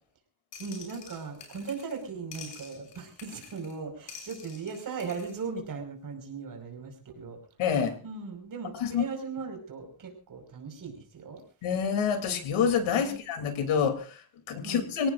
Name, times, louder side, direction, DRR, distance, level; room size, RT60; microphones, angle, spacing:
sound 1, 0.5-2.1 2.3-3.8 4.1-5.4, left 6 dB, 65° left, 7.0 m, -48 dB
voice 1, 0.6-7.4 8.0-11.4 12.9-13.2 14.6-14.8, right 5 dB, 40° right, 4 dB, 5.4 m, -38 dB
voice 2, 7.6-8.0 8.8-9.0 11.6-15.1, left 7 dB, 80° left, 7 dB, 3.3 m, -27 dB
26.0 x 17.5 x 2.6 m, 0.37 s
cardioid pair, 145°, 48 cm